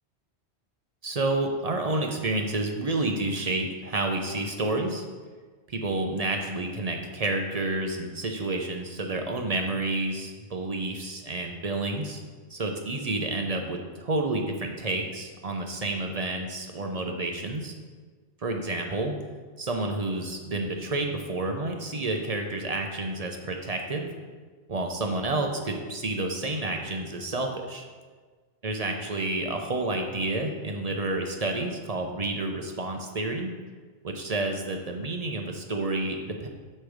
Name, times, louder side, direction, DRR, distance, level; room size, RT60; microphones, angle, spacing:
voice 1, 1.0-5.0 5.7-12.2 12.5-17.7 18.4-19.1 19.6-24.1 24.7-27.8 28.6-33.5 34.0-36.5, right 2 dB, 45° right, 3 dB, 0.6 m, -29 dB
8.1 x 3.3 x 6.4 m, 1.4 s
omnidirectional pair, 1.1 m